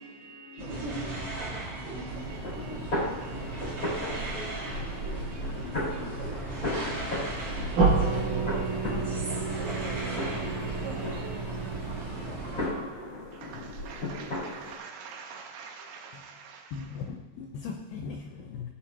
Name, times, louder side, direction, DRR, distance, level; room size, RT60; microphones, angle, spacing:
voice 1, 0.0-13.3, equal, 50° left, 0.9 m, -49 dB
sound 1, 0.6-12.7, right 2 dB, 35° right, 2.4 m, -36 dB
sound 2, 2.1-14.8, left 1 dB, 20° left, 3.8 m, -36 dB
sound 3, 7.8-12.6, right 4 dB, 55° right, 3.0 m, -29 dB
voice 2, 13.3-17.1, right 6 dB, 75° right, 3.2 m, -45 dB
voice 3, 16.7-18.7, left 5 dB, 80° left, 2.5 m, -38 dB
16.0 x 7.2 x 2.9 m
omnidirectional pair, 5.4 m